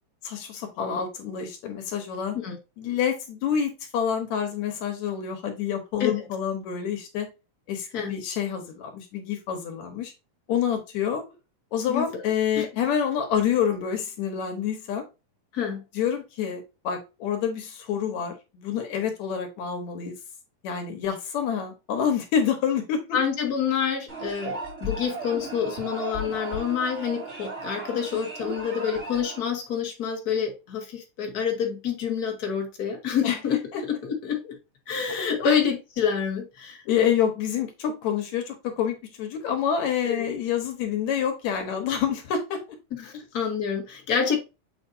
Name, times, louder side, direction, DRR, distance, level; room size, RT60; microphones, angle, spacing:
voice 1, 0.2-2.4 2.8-7.3 7.7-10.1 10.5-11.2 11.7-15.0 15.9-20.1 20.6-23.2 33.2-33.4 33.7-33.8 35.4-35.6 36.9-42.6, left 8 dB, 70° left, 2.2 m, -27 dB
voice 2, 15.5-15.8 23.1-33.6 33.9-34.6 34.9-36.8 40.0-40.3 43.0-44.4, left 7 dB, 50° left, 1.1 m, -27 dB
sound 1, 24.1-29.4, right 1 dB, 20° right, 3.2 m, -36 dB
7.0 x 5.1 x 2.6 m
omnidirectional pair, 3.6 m